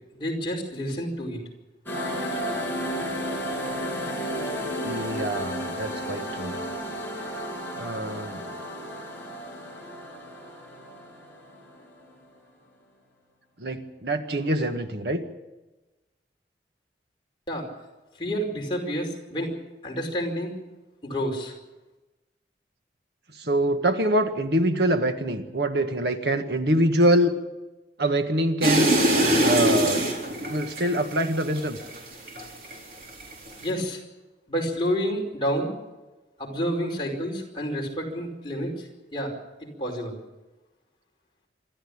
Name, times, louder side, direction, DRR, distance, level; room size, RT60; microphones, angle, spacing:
voice 1, 0.1-1.4 17.5-17.7 18.2-19.5 19.8-20.5 21.0-21.5 33.6-34.0 34.5-35.7 36.4-39.3 39.6-40.2, equal, 25° left, -1 dB, 5.0 m, -29 dB
sound 1, 1.9-12.2, equal, 10° left, 6.8 m, -33 dB
voice 2, 4.8-6.5 7.7-8.4 13.6-15.2 23.3-27.3 28.0-28.9 29.4-30.1 30.5-31.8, right 1 dB, 70° right, 7 dB, 1.7 m, -24 dB
sound 2, 28.6-32.8 33.1-33.7, right 1 dB, 55° right, 4.0 m, -23 dB
26.0 x 13.0 x 8.7 m, 1.1 s
head